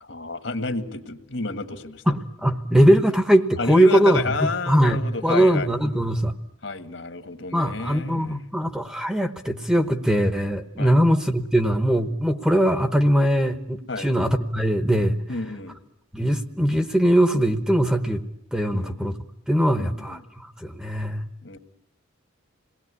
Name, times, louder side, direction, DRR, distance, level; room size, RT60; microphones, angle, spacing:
voice 1, 0.0-2.0 3.6-5.7 6.6-8.4 10.8-11.0 13.9-14.1 15.3-15.7 18.7-19.0 19.8-20.2 21.4-21.6, left 3 dB, 65° left, 8 dB, 1.9 m, -30 dB
voice 2, 2.1-6.3 7.5-15.2 16.1-18.2 18.5-19.1 19.5-21.2, equal, 5° right, 8 dB, 1.0 m, -21 dB
27.5 x 19.5 x 9.7 m, 0.86 s
head